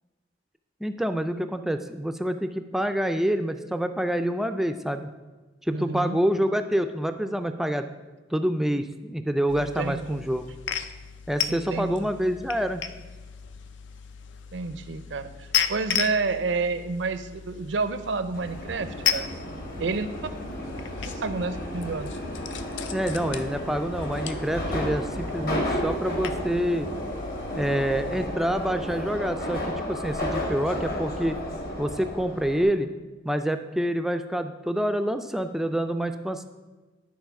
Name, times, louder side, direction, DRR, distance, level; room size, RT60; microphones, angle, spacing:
voice 1, 0.8-5.1 5.6-7.9 8.3-10.4 11.3-12.8 22.9-26.9 27.5-31.4 31.8-32.9 33.2-36.4, equal, ahead, 8 dB, 0.3 m, -27 dB
voice 2, 5.7-6.2 9.6-10.3 11.5-12.1 14.5-19.3 19.8-20.1 21.0-22.2, right 4 dB, 75° right, 11 dB, 0.5 m, -30 dB
sound 1, 9.5-28.3, left 8 dB, 80° left, 0.5 m, -35 dB
Subway metro underground, 18.3-32.6, left 1 dB, 55° left, 1.4 m, -33 dB
10.5 x 4.2 x 5.8 m, 1.2 s
head